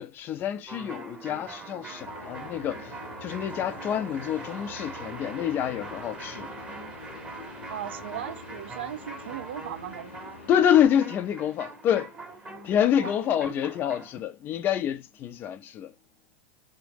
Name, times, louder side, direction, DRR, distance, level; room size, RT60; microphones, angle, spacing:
voice 1, 0.0-2.9 3.2-6.5 10.5-12.1 12.5-15.9, left 9 dB, 35° left, 0.3 m, -27 dB
sound 1, 0.7-14.2, right 3 dB, 15° right, 0.7 m, -42 dB
sound 2, 2.0-10.7, left 5 dB, 85° left, 0.6 m, -46 dB
voice 2, 7.7-10.3 13.0-13.1 13.5-13.6, right 10 dB, 75° right, 0.4 m, -37 dB
2.7 x 2.1 x 3.3 m
hypercardioid pair, 100°, 6 cm